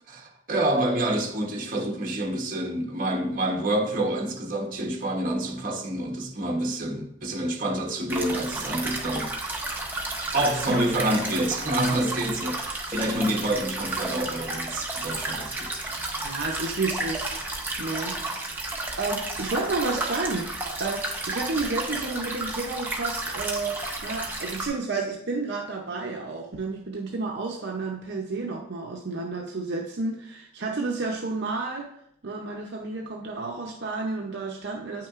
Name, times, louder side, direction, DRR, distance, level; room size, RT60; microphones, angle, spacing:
voice 1, 0.1-9.3 10.3-15.7, right 1 dB, 45° right, 1.0 m, -27 dB
sound 1, 8.1-24.7, right 2 dB, 10° right, 0.8 m, -32 dB
voice 2, 16.2-18.2 18.7-31.9 32.2-35.1, right 3 dB, 60° right, 0.6 m, -31 dB
8.8 x 5.8 x 2.4 m
head